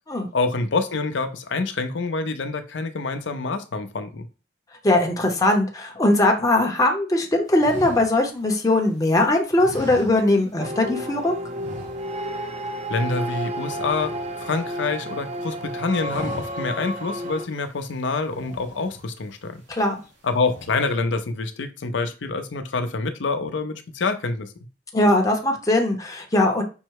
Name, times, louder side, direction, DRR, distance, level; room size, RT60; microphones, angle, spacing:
voice 1, 0.3-4.3 12.9-19.6 20.2-24.5, left 3 dB, 75° left, 0.6 m, -26 dB
voice 2, 4.8-11.3 19.7-20.0 24.9-26.6, left 1 dB, 20° left, 0.7 m, -20 dB
sound 1, 7.5-9.0 9.5-10.7 10.9-11.1 11.5-12.4 12.7-12.9 13.2-14.9 15.3-15.6 15.9-16.8 17.3-17.4 18.1-19.3 19.7-20.1 20.3-20.9, equal, 70° right, 1.9 m, -40 dB
sound 2, 10.6-17.4, equal, 35° right, 0.5 m, -31 dB
5.5 x 2.1 x 4.6 m
head